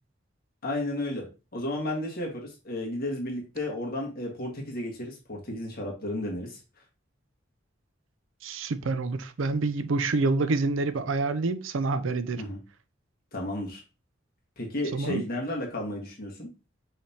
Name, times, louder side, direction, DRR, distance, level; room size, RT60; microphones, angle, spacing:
voice 1, 0.6-1.3 1.5-6.6 12.4-12.6 13.3-13.8 14.6-16.5, left 1 dB, 50° left, 1.6 m, -33 dB
voice 2, 8.4-12.4 14.9-15.2, right 3 dB, 80° right, 0.5 m, -27 dB
5.6 x 3.5 x 2.8 m
head